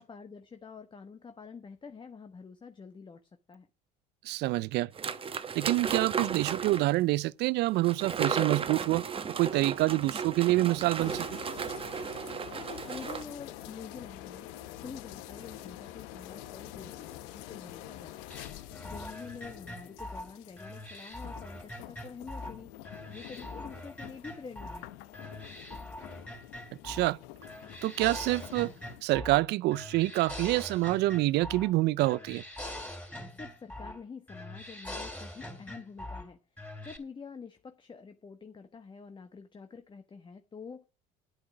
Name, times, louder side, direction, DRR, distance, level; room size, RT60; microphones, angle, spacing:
voice 1, 0.0-3.7 12.5-14.5 14.8-18.2 18.6-22.7 23.1-24.9 33.3-40.9, left 5 dB, 25° left, 1.2 m, -47 dB
voice 2, 4.2-4.9 5.5-9.0 9.4-11.2 26.8-27.2 27.8-28.7 29.0-32.4, right 18 dB, 65° right, 0.5 m, -27 dB
sound 1, 5.0-7.0 7.8-13.2, right 6 dB, 30° right, 1.1 m, -34 dB
sound 2, 11.0-29.0, left 14 dB, 80° left, 1.0 m, -47 dB
sound 3, 18.3-22.6 22.8-24.8 25.1-27.2 27.4-29.4 29.7-31.7 32.0-34.0 34.3-36.3 36.6-37.0, left 1 dB, 10° left, 3.9 m, -43 dB
10.0 x 8.5 x 6.0 m
supercardioid pair, 95°, 19 cm